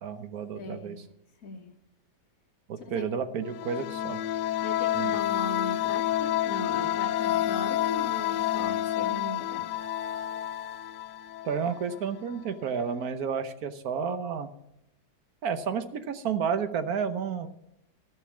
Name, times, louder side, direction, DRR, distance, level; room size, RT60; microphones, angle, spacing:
voice 1, 0.0-0.9 2.7-4.2 4.9-5.1 11.4-14.5 15.4-17.5, right 6 dB, 60° right, 9 dB, 1.4 m, -31 dB
voice 2, 0.5-1.0 1.4-1.7 2.9-3.0 4.6-9.7, left 2 dB, 50° left, 3 dB, 1.9 m, -39 dB
sound 1, 3.5-12.1, left 12 dB, 75° left, 1.2 m, -29 dB
14.0 x 5.4 x 8.2 m, 0.84 s
omnidirectional pair, 1.9 m